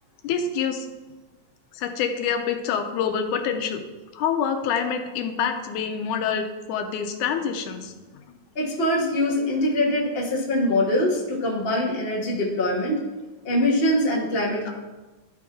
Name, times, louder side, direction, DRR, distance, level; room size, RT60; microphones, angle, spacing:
voice 1, 0.2-0.9 1.7-3.8 4.1-7.9, left 7 dB, 85° left, 6 dB, 2.2 m, -26 dB
voice 2, 8.5-13.0 13.4-14.7, left 1 dB, 35° left, -4 dB, 1.0 m, -23 dB
12.0 x 4.6 x 3.7 m, 1.2 s
omnidirectional pair, 3.5 m